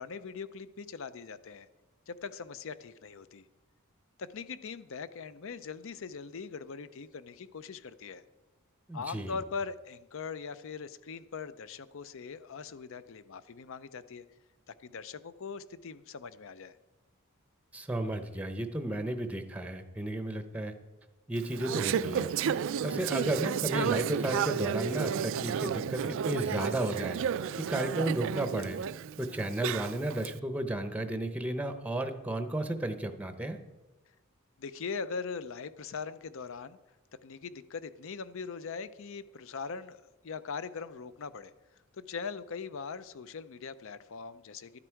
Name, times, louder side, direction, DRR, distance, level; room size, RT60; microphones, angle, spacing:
voice 1, 0.0-1.7 2.1-3.4 4.2-8.2 8.9-14.2 14.7-16.7 34.6-36.8 37.2-41.5 41.9-44.8, left 5 dB, 65° left, 15 dB, 0.5 m, -41 dB
voice 2, 8.9-9.4 17.7-20.8 21.3-22.3 22.8-27.2 27.6-28.8 29.2-33.6, right 1 dB, 5° right, 8 dB, 0.7 m, -33 dB
Conversation / Chatter, 21.4-30.3, right 8 dB, 60° right, 0.3 m, -32 dB
12.0 x 9.8 x 4.6 m, 1.1 s
head